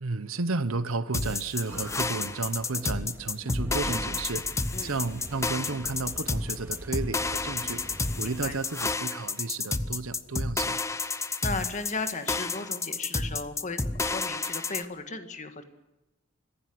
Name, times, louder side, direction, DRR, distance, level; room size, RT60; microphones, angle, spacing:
voice 1, 0.0-4.5 4.8-7.8 8.2-10.8, right 3 dB, 85° right, 13 dB, 1.0 m, -32 dB
sound 1, 1.1-14.8, left 3 dB, 15° left, 0.8 m, -31 dB
sound 2, 1.7-8.6, equal, 10° right, 2.3 m, -42 dB
voice 2, 8.2-8.6 11.4-15.6, left 3 dB, 35° left, 8 dB, 1.9 m, -36 dB
24.5 x 15.5 x 7.9 m, 1.0 s
head